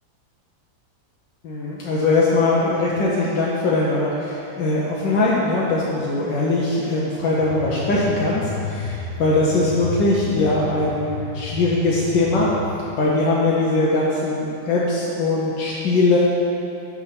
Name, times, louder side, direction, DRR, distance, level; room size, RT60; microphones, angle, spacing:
voice 1, 1.4-12.5 13.0-16.2, left 2 dB, 85° left, -5 dB, 1.6 m, -21 dB
sound 1, 7.4-12.7, left 4 dB, 60° left, 1.3 m, -32 dB
6.7 x 6.2 x 5.8 m, 2.8 s
omnidirectional pair, 1.9 m